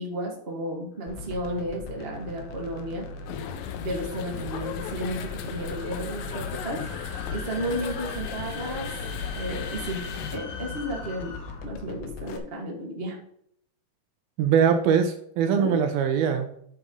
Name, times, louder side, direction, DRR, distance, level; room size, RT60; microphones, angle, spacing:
voice 1, 0.0-3.1 3.8-5.2 5.4-6.8 7.3-9.0 9.3-10.0 10.3-11.3 11.6-13.2 15.5-15.7, equal, 40° right, -1 dB, 0.8 m, -33 dB
sound 1, 1.1-12.4, left 3 dB, 70° left, 2.2 m, -40 dB
sound 2, 1.1-11.8, left 3 dB, 55° left, 3.0 m, -43 dB
sound 3, 3.3-10.4, left 8 dB, 85° left, 2.0 m, -36 dB
voice 2, 14.4-16.5, right 7 dB, 75° right, 6 dB, 2.4 m, -22 dB
9.1 x 4.9 x 5.4 m, 0.69 s
omnidirectional pair, 4.8 m